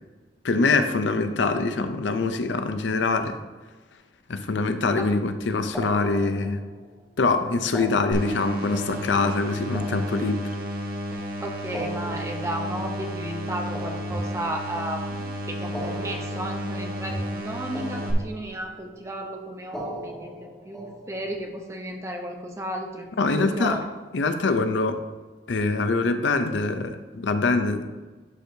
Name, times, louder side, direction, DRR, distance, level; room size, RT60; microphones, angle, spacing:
voice 1, 0.4-3.4 4.3-6.6 7.2-10.5 23.2-23.8 24.1-25.0 25.5-27.8, left 3 dB, 80° left, 8 dB, 0.5 m, -24 dB
sound 1, 5.7-7.0 7.6-10.9 11.6-14.9 15.6-17.5 17.7-18.8 19.6-21.4, equal, 5° left, 1.7 m, -39 dB
sound 2, 8.1-18.1, equal, 50° right, 1.0 m, -32 dB
voice 2, 11.4-23.9, right 1 dB, 15° right, 2 dB, 0.7 m, -34 dB
11.5 x 4.5 x 2.7 m, 1.3 s
head